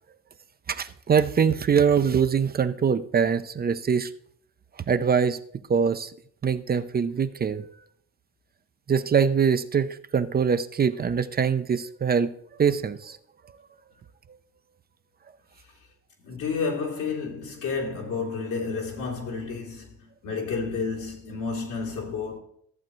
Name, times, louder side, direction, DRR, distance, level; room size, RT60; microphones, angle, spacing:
voice 1, 0.7-4.1 4.9-5.4 5.7-6.1 6.4-7.7 8.9-12.3 12.6-13.2, right 6 dB, 30° right, 0.5 m, -23 dB
voice 2, 16.2-22.4, left 4 dB, 85° left, 3.0 m, -31 dB
14.0 x 7.7 x 3.1 m
cardioid pair, 90°, 30 cm